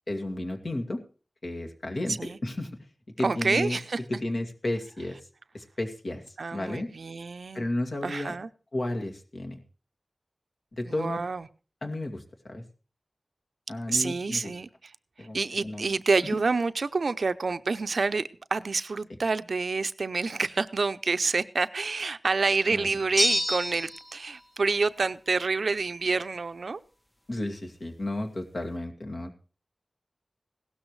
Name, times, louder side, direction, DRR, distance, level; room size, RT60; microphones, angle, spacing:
voice 1, 0.1-1.0 1.4-2.7 3.2-3.8 4.1-5.2 5.5-6.2 6.5-6.9 7.5-8.3 8.7-9.6 10.7-11.2 11.8-12.6 13.7-14.6 15.2-15.9 22.7-22.9 27.3-29.4, left 1 dB, 65° left, 2.2 m, -32 dB
voice 2, 3.2-4.0 6.4-7.6 8.0-8.5 10.9-11.5 13.9-14.9 15.2-26.8, right 4 dB, 85° right, 0.6 m, -28 dB
sound 1, 23.2-24.1, equal, 15° left, 0.6 m, -26 dB
17.0 x 12.5 x 3.2 m
wide cardioid pair, 70°, 0 cm